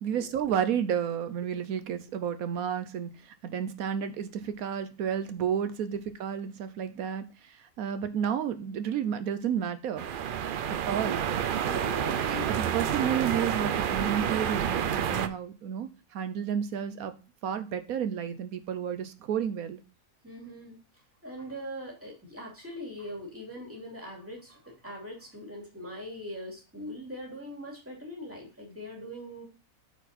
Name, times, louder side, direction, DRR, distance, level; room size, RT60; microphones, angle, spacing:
voice 1, 0.0-10.1 10.9-11.2 12.5-17.2 17.4-19.8, right 8 dB, 75° right, 10 dB, 1.2 m, -31 dB
sound 1, 10.0-15.3, right 9 dB, 90° right, 0.4 m, -29 dB
voice 2, 11.6-12.6 20.2-20.8 21.2-29.5, equal, 10° right, -1 dB, 2.5 m, -41 dB
8.1 x 4.7 x 4.1 m, 0.32 s
omnidirectional pair, 1.6 m